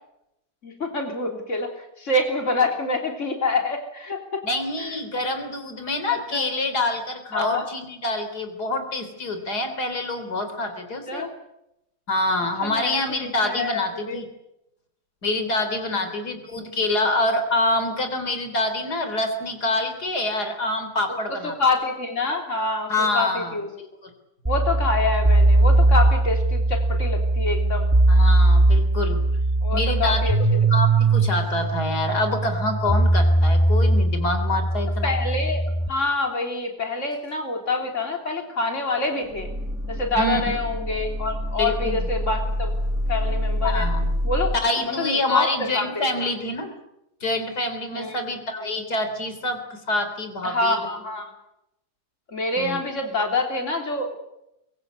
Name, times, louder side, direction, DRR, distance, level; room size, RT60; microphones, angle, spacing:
voice 1, 0.6-1.7 2.0-4.4 6.3-6.5 7.3-7.6 11.1-11.3 12.6-14.2 16.0-16.1 21.6-23.7 24.5-27.9 29.6-30.6 35.0-35.6 35.9-39.5 39.9-42.7 43.1-43.9 44.2-44.5 44.9-46.0 47.9-48.2 48.6-48.7 50.4-51.3 52.3-54.2, left 2 dB, 50° left, 3 dB, 3.7 m, -26 dB
voice 2, 4.4-11.3 12.1-14.3 15.2-21.6 22.9-24.1 28.1-29.2 29.7-30.2 30.5-35.1 40.2-40.6 41.6-42.1 43.6-44.1 44.6-46.7 47.2-50.8 52.6-52.8, left 2 dB, 90° left, 8 dB, 4.3 m, -26 dB
sound 1, 24.4-35.9, right 2 dB, 10° right, 1.4 m, -19 dB
sound 2, 35.4-35.5 37.1-37.2 37.7-44.6, equal, 50° right, 4.3 m, -27 dB
24.0 x 23.0 x 8.2 m, 0.85 s
omnidirectional pair, 1.7 m